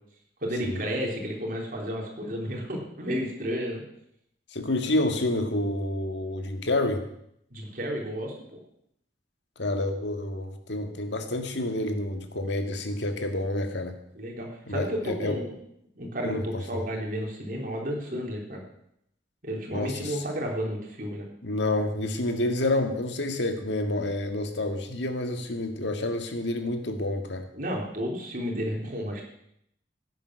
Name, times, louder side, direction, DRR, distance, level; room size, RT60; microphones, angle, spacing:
voice 1, 0.4-3.8 7.5-8.6 14.2-15.5 16.0-18.6 19.4-21.3 27.5-29.2, equal, 50° right, 0 dB, 3.5 m, -32 dB
voice 2, 4.5-7.1 9.6-13.9 14.7-15.4 16.2-16.4 16.7-16.8 19.7-20.2 21.4-27.5, left 1 dB, 75° left, 6 dB, 1.8 m, -28 dB
16.0 x 9.1 x 6.3 m, 0.75 s
head